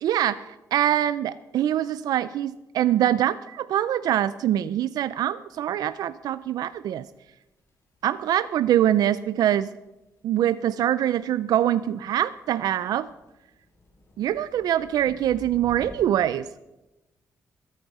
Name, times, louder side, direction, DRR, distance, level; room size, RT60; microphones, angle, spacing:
voice 1, 0.0-7.1 8.0-9.7 10.2-13.1 14.2-16.5, right 11 dB, 85° right, 14 dB, 0.4 m, -24 dB
sound 1, 5.5-16.1, left 1 dB, 45° left, 4.2 m, -52 dB
21.5 x 9.4 x 4.9 m, 0.99 s
cardioid pair, 140°, 6 cm